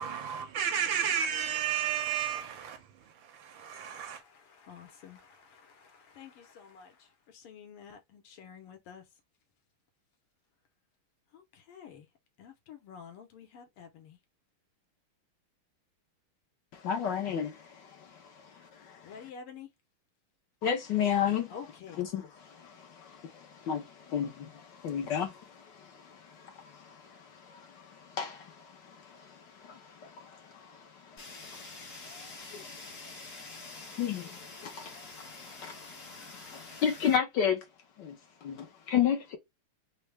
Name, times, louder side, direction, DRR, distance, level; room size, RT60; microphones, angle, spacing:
voice 1, 0.0-2.8 3.8-4.2, right 8 dB, 70° right, 1.3 m, -31 dB
voice 2, 1.3-1.6 4.0-9.1 11.3-12.1 12.4-14.2 19.0-19.7 21.5-22.0, left 7 dB, 85° left, 1.8 m, -50 dB
voice 3, 16.7-19.1 20.6-21.5 22.0-37.7 38.0-39.4, left 8 dB, 65° left, 1.2 m, -34 dB
Fire, 31.2-37.2, left 3 dB, 45° left, 1.2 m, -47 dB
4.2 x 2.0 x 3.2 m
omnidirectional pair, 2.4 m